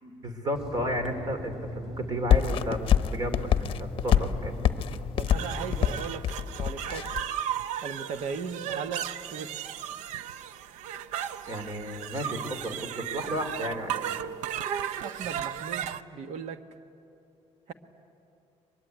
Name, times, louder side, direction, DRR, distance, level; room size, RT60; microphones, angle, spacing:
voice 1, 0.0-2.8 3.1-4.7 11.5-14.1, equal, 35° right, 8 dB, 3.1 m, -33 dB
Water tap faucet / Sink (filling or washing), 0.5-6.1, equal, 5° right, 2.6 m, -40 dB
sound 1, 2.3-7.3, left 9 dB, 50° left, 0.9 m, -25 dB
voice 2, 5.1-6.2 6.6-7.1 7.8-9.7 15.0-16.6 17.7-17.8, right 6 dB, 70° right, 9 dB, 1.4 m, -37 dB
sound 2, 5.3-16.0, right 10 dB, 85° right, 0.7 m, -35 dB
23.0 x 22.0 x 9.5 m, 2.9 s
cardioid pair, 125°, 12 cm